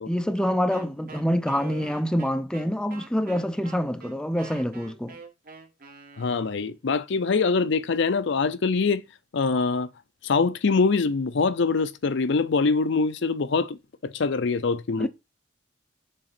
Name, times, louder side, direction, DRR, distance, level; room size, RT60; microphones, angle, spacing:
voice 1, 0.1-5.2 15.0-15.1, equal, 5° left, 0.5 m, -26 dB
Wind instrument woodwind instrument, 0.7-6.8, right 4 dB, 50° right, 1.4 m, -46 dB
voice 2, 6.2-9.0 9.3-9.9 10.2-13.8 14.0-15.1, left 4 dB, 70° left, 0.6 m, -24 dB
6.5 x 3.9 x 6.0 m
head